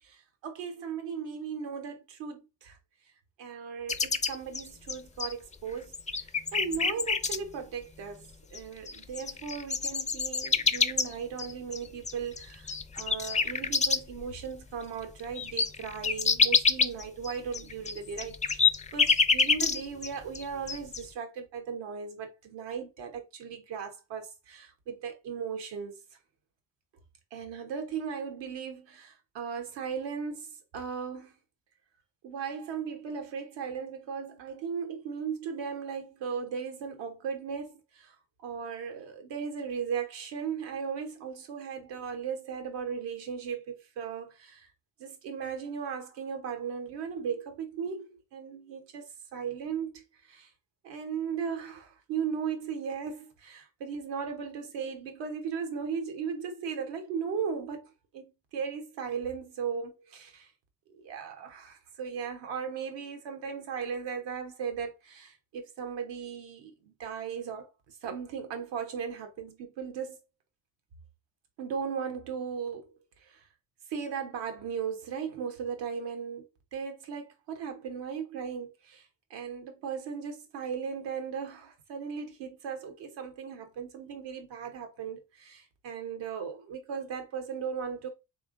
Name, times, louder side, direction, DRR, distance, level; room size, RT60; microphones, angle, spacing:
voice 1, 0.0-2.8 3.4-26.0 27.3-30.5 30.7-31.3 32.2-38.1 38.4-44.7 45.0-49.0 49.3-50.5 50.8-57.9 58.1-58.2 58.5-60.5 60.9-70.2 71.6-72.9 73.2-73.4 73.9-76.5 76.7-88.1, right 6 dB, 90° right, 1.3 m, -37 dB
sound 1, 3.9-5.5 5.9-7.4 8.5-8.6 8.9-14.2 14.6-14.7 15.0-20.1 20.3-21.0, left 5 dB, 20° left, 0.4 m, -27 dB
3.6 x 3.6 x 3.7 m
supercardioid pair, 70°, 42 cm